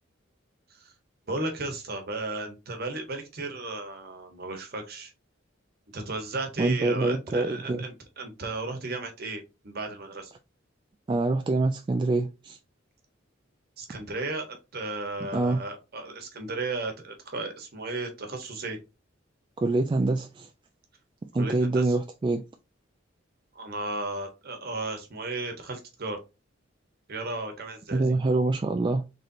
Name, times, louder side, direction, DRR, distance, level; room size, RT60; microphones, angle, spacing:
voice 1, 1.3-5.1 5.9-10.3 13.8-18.8 21.4-22.0 23.5-26.2 27.1-28.1, right 2 dB, 55° right, 1.1 m, -35 dB
voice 2, 6.6-7.8 11.1-12.6 15.3-15.6 19.6-20.5 21.3-22.4 27.9-29.1, right 2 dB, 25° right, 0.3 m, -25 dB
4.0 x 3.2 x 2.7 m
head